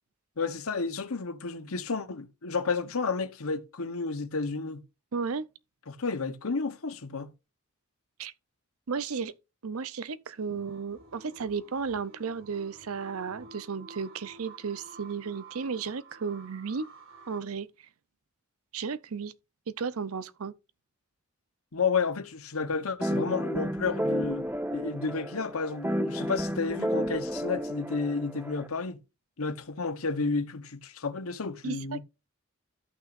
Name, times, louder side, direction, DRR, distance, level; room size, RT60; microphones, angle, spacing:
voice 1, 0.4-4.8 5.9-7.3 21.7-29.0 29.4-32.0, left 4 dB, 90° left, 1.0 m, -31 dB
voice 2, 5.1-5.5 8.2-8.3 8.9-9.3 9.6-16.9 17.3-17.7 18.7-19.3 19.8-20.5 31.6-32.0, right 5 dB, 90° right, 0.6 m, -34 dB
sound 1, 10.5-17.4, right 3 dB, 65° right, 2.0 m, -51 dB
sound 2, 23.0-28.7, equal, 10° right, 0.4 m, -32 dB
13.5 x 5.9 x 2.5 m
head